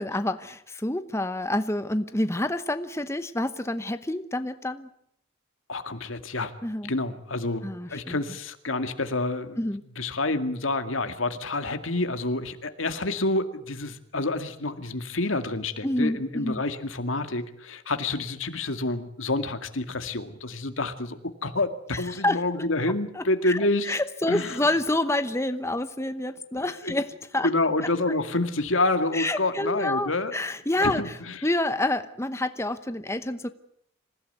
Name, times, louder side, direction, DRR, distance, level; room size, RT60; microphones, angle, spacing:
voice 1, 0.0-4.9 6.6-6.9 7.6-8.2 9.6-9.8 15.8-16.6 21.9-22.4 23.1-27.5 29.1-33.5, left 1 dB, 15° left, 10 dB, 0.9 m, -28 dB
voice 2, 5.7-6.5 6.9-9.6 10.0-24.0 24.3-24.7 26.8-26.9 27.4-30.3 30.8-31.4, left 2 dB, 80° left, 8 dB, 2.1 m, -28 dB
26.5 x 16.0 x 9.5 m, 0.72 s
head